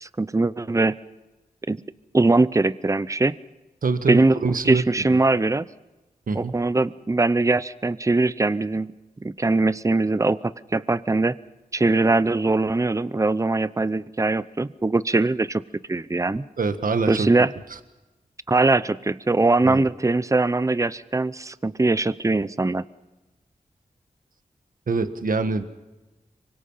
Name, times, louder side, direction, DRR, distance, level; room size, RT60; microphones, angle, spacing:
voice 1, 0.0-1.0 1.7-1.8 2.1-3.3 4.1-4.4 4.6-5.7 6.3-8.9 9.2-11.3 11.7-15.6 15.9-16.4 17.1-17.5 18.5-22.8, right 3 dB, 20° right, 16 dB, 0.7 m, -21 dB
voice 2, 3.8-5.2 6.3-6.5 16.6-17.3 19.6-19.8 24.9-25.6, right 4 dB, 75° right, 9 dB, 1.5 m, -25 dB
26.5 x 24.5 x 5.7 m, 1.1 s
wide cardioid pair, 70°, 14 cm